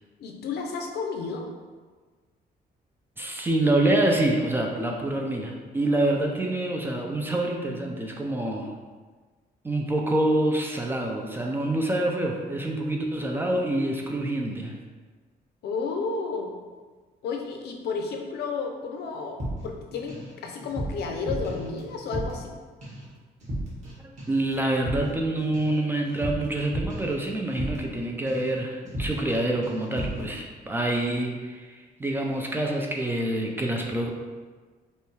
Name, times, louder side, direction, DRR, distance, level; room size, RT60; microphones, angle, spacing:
voice 1, 0.2-1.5 15.6-16.5 17.2-19.4 19.6-22.5, left 4 dB, 75° left, 2 dB, 0.6 m, -32 dB
voice 2, 3.2-8.8 9.6-14.7 24.0-34.1, right 1 dB, 15° right, 0 dB, 0.3 m, -26 dB
sound 1, 19.4-20.3 20.6-22.5 22.8-23.1 23.4-23.9 24.2-28.0 28.3-28.6 28.9-29.4 29.6-30.3, right 1 dB, 45° right, 1.3 m, -34 dB
5.4 x 2.3 x 3.1 m, 1.4 s
cardioid pair, 175°, 17 cm